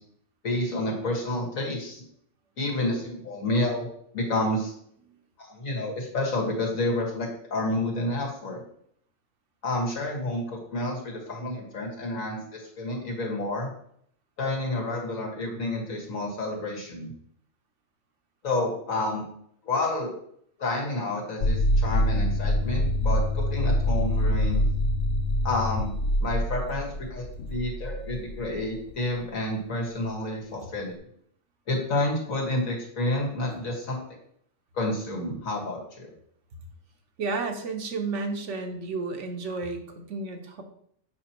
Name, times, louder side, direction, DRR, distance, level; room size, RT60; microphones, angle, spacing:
voice 1, 0.4-2.0 2.6-4.7 5.4-8.6 9.6-13.7 14.4-17.1 18.4-19.3 19.6-20.1 20.6-24.7 25.4-25.9 26.2-31.0 31.7-34.0 34.7-36.1, left 2 dB, 90° left, -1 dB, 2.1 m, -29 dB
sound 1, 21.4-29.1, left 1 dB, 55° left, 0.8 m, -25 dB
voice 2, 37.2-40.6, right 3 dB, 65° right, 5 dB, 1.2 m, -32 dB
7.6 x 5.7 x 3.0 m, 0.66 s
omnidirectional pair, 1.4 m